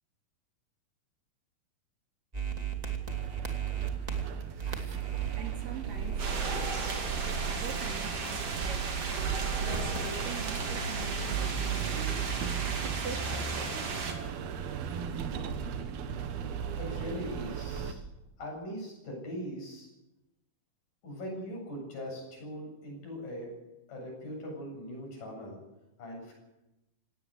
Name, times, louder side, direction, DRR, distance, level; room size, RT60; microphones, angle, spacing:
sound 1, 2.3-14.3, right 9 dB, 15° right, 1.9 m, -37 dB
sound 2, 3.1-17.9, right 6 dB, 85° right, 3.3 m, -37 dB
voice 1, 5.3-6.9 7.2-8.9 9.6-12.2 12.8-13.9 14.5-14.6, right 4 dB, 65° right, 2 dB, 4.5 m, -43 dB
sound 3, 6.2-14.1, right 4 dB, 45° right, 3.2 m, -36 dB
voice 2, 16.8-18.0 18.4-19.9 21.0-23.6 23.9-25.6 26.0-26.3, equal, 60° left, 0 dB, 9.6 m, -40 dB
18.5 x 17.0 x 8.2 m, 0.95 s
omnidirectional pair, 4.3 m